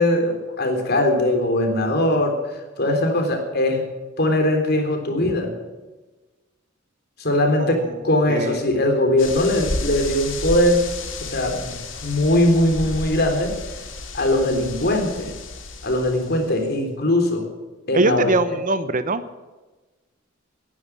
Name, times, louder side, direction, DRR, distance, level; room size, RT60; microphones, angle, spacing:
voice 1, 0.0-2.4 2.8-3.8 4.2-5.5 7.2-10.8 11.2-13.6 14.1-15.3 15.8-17.4 17.9-18.3, left 1 dB, 55° left, 4 dB, 3.7 m, -20 dB
voice 2, 7.6-7.9 8.3-8.6 17.9-19.2, right 2 dB, 45° right, 13 dB, 0.8 m, -22 dB
sound 1, 9.2-16.7, left 3 dB, 75° left, 2.4 m, -32 dB
18.5 x 11.0 x 6.2 m, 1.2 s
head